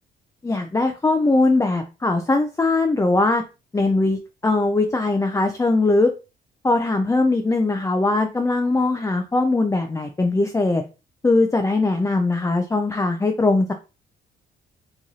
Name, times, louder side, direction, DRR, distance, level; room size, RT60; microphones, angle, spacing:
voice 1, 0.4-3.4 3.7-6.1 6.6-10.8 11.2-13.7, left 2 dB, 15° left, 4 dB, 0.4 m, -20 dB
3.0 x 2.5 x 3.9 m, 0.30 s
cardioid pair, 90°, 20 cm